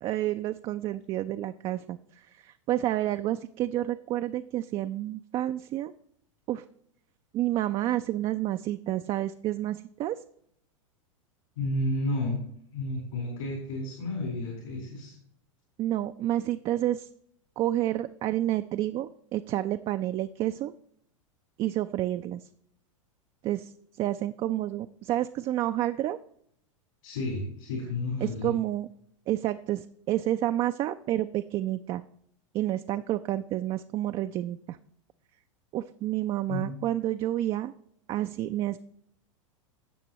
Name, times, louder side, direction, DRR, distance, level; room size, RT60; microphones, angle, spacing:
voice 1, 0.0-5.9 6.5-6.6 7.3-10.2 15.8-17.1 17.6-20.7 21.6-22.5 23.4-26.2 28.2-28.9 29.3-32.0 32.5-34.8 35.7-37.7 38.1-38.8, right 13 dB, 30° right, 9 dB, 0.4 m, -29 dB
voice 2, 11.5-12.4 12.7-15.1 27.0-28.5 36.5-36.8, left 2 dB, 70° left, -2 dB, 3.9 m, -31 dB
16.5 x 6.7 x 2.9 m, 0.68 s
hypercardioid pair, 100°, 17 cm